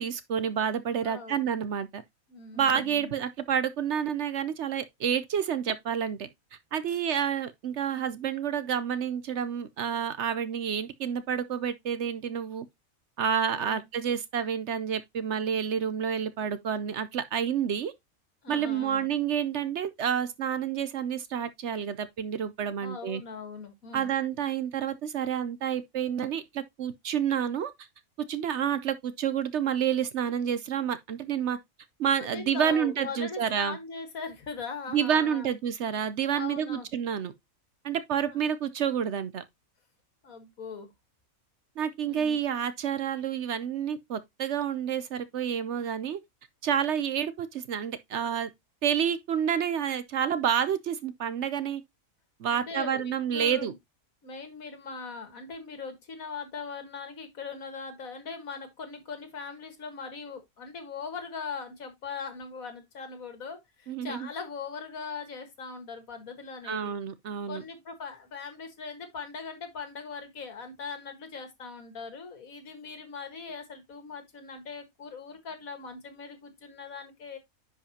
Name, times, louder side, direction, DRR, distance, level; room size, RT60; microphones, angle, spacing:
voice 1, 0.0-2.0 2.5-6.3 6.7-12.7 13.2-17.9 18.5-23.2 23.9-27.7 28.3-31.6 32.0-33.8 34.9-37.3 37.8-39.4 41.8-46.2 46.6-48.5 48.8-51.8 52.4-53.7 63.9-64.3 66.6-67.6, right 8 dB, 60° right, 0.9 m, -29 dB
voice 2, 1.0-1.4 2.3-3.1 13.5-13.8 18.4-19.1 22.8-24.1 32.2-35.5 36.3-36.9 38.3-38.4 40.2-40.9 42.0-42.4 52.5-53.8 54.2-66.9 67.5-77.4, left 5 dB, 75° left, 2.1 m, -40 dB
10.0 x 5.0 x 2.8 m
omnidirectional pair, 1.5 m